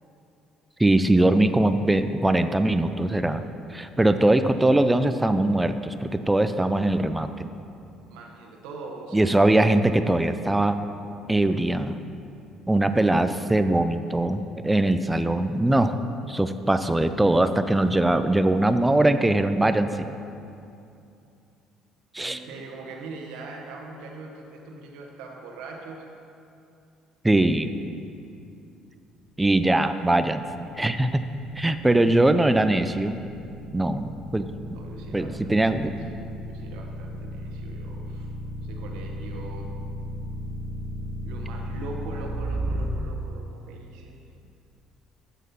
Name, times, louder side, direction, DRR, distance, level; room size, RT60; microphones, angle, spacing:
voice 1, 0.8-3.4 3.7-7.5 9.1-10.8 11.3-12.0 12.7-15.9 16.3-20.1 22.1-22.4 27.2-27.7 29.4-30.4 30.8-31.2 31.6-33.2 33.7-34.5 35.1-35.9, right 1 dB, 10° right, 10 dB, 0.4 m, -21 dB
voice 2, 8.1-9.6 22.2-26.1 34.7-35.6 36.4-38.3 38.6-39.8 41.2-44.2, right 3 dB, 85° right, 1 dB, 1.1 m, -41 dB
sound 1, 30.0-42.9, right 1 dB, 30° right, 1.2 m, -35 dB
7.7 x 7.4 x 5.7 m, 2.6 s
cardioid pair, 120°, 0 cm